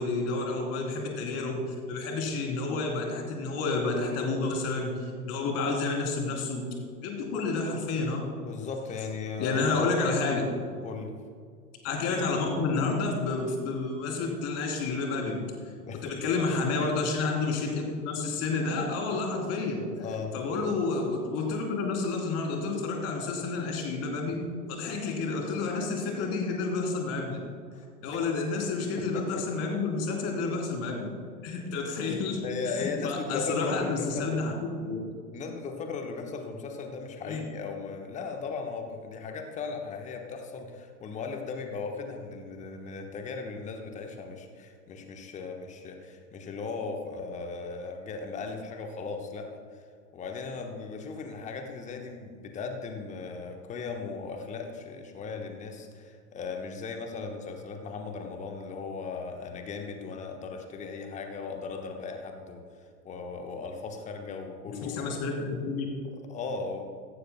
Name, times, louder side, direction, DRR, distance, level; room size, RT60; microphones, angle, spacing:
voice 1, 0.0-6.7 7.0-8.2 9.4-10.4 11.8-15.4 16.0-19.9 20.3-24.4 24.7-27.4 28.0-31.1 31.4-32.4 32.6-35.0 37.2-37.4 64.8-65.9, left 3 dB, 30° left, 0 dB, 3.2 m, -30 dB
voice 2, 8.4-9.8 10.8-11.1 15.8-16.1 20.0-20.3 27.7-27.9 29.0-29.4 32.4-34.5 35.3-49.8 50.1-62.6 63.0-65.1 66.3-67.0, left 4 dB, 15° left, 4 dB, 1.1 m, -37 dB
15.5 x 14.5 x 2.2 m, 2.1 s
figure-of-eight pair, 105°, 49 cm